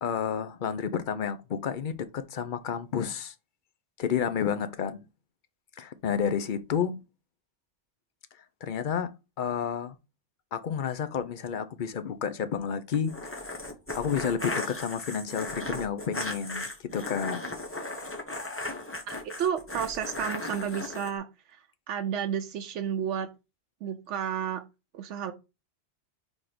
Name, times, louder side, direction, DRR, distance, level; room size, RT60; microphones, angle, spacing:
voice 1, 0.0-3.3 4.0-5.0 5.8-7.0 8.6-9.1 9.4-10.0 10.5-13.5 13.9-17.4, left 7 dB, 55° left, 0.7 m, -30 dB
sound 1, 12.9-21.1, left 2 dB, 10° left, 0.9 m, -36 dB
voice 2, 19.1-21.6 21.9-23.3 23.8-24.6 24.9-25.3, right 8 dB, 85° right, 0.9 m, -32 dB
4.4 x 4.2 x 5.0 m
omnidirectional pair, 1.2 m